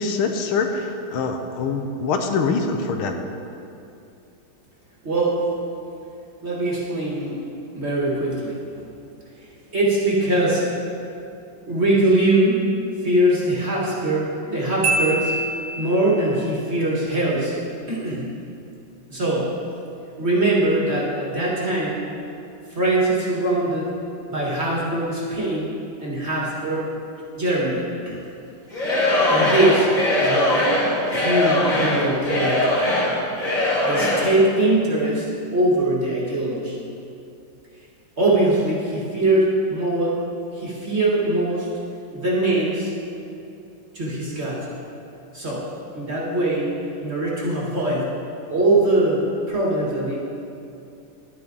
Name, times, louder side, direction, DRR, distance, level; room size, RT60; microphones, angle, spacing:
voice 1, 0.0-3.1, left 4 dB, 75° left, 5 dB, 1.6 m, -24 dB
voice 2, 5.0-5.5 6.4-7.4 7.7-8.9 9.7-10.7 11.7-12.8 13.0-15.3 15.8-18.3 19.1-19.5 20.2-22.0 22.7-23.9 24.3-25.8 26.0-26.9 27.4-28.2 29.3-29.9 30.2-30.7 31.1-32.9 33.8-35.3 35.5-36.8 38.2-40.2 40.5-41.7 42.1-42.9 43.9-44.7 45.3-45.7 45.9-46.7 47.0-48.1 48.5-50.2, right 1 dB, 30° right, -5 dB, 1.7 m, -22 dB
Marimba xylophone, 14.8-16.3, right 2 dB, 60° right, 0.6 m, -25 dB
Singing / Crowd, 28.7-34.4, left 1 dB, 40° left, 2.4 m, -21 dB
11.0 x 10.0 x 3.9 m, 2.6 s
omnidirectional pair, 2.4 m